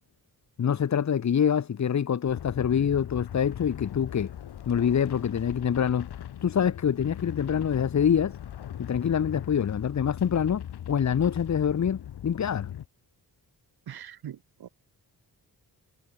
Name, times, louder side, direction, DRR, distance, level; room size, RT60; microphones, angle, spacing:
voice 1, 0.6-4.3 4.7-6.1 6.4-8.3 8.8-12.7, left 8 dB, 45° left, 1.0 m, -25 dB
sound 1, 2.3-12.9, left 10 dB, 75° left, 1.4 m, -39 dB
voice 2, 13.9-14.7, right 10 dB, 65° right, 1.2 m, -42 dB
wide cardioid pair, 160°, 39 cm